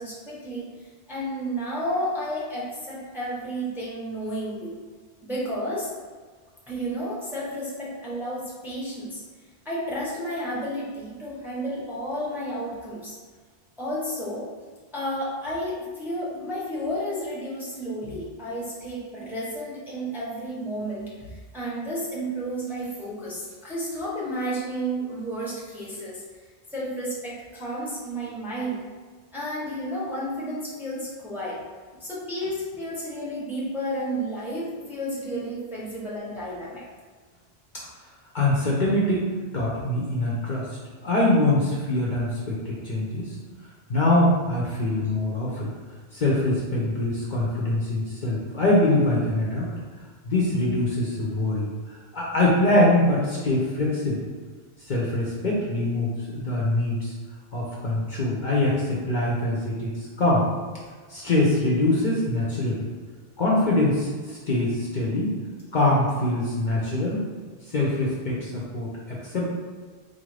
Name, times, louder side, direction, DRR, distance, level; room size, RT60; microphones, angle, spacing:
voice 1, 0.0-4.7 5.2-5.9 6.7-9.2 9.6-13.2 13.8-14.5 14.9-26.2 26.7-28.9 29.3-31.6 32.0-36.8 45.0-45.1, equal, ahead, -7 dB, 0.8 m, -32 dB
voice 2, 38.3-39.3 39.5-40.7 41.0-43.4 43.9-45.7 46.1-49.7 50.3-54.3 54.9-57.1 57.5-60.4 61.1-62.9 63.4-65.4 65.7-67.3 67.6-68.9 69.2-69.4, left 1 dB, 50° left, -5 dB, 0.7 m, -23 dB
4.1 x 2.5 x 3.2 m, 1.5 s
omnidirectional pair, 1.1 m